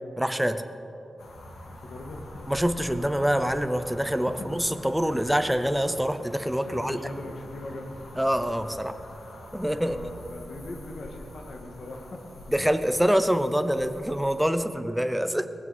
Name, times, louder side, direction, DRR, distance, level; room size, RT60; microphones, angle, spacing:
voice 1, 0.2-0.6 2.5-7.0 8.2-8.9 9.5-10.0 12.5-15.5, equal, ahead, 9 dB, 0.7 m, -25 dB
sound 1, 1.2-14.4, left 1 dB, 80° left, 2.4 m, -45 dB
voice 2, 1.6-2.5 6.7-8.1 9.8-12.2, left 1 dB, 60° left, 1 dB, 2.1 m, -40 dB
19.0 x 15.5 x 4.4 m, 2.9 s
wide cardioid pair, 130°, 0 cm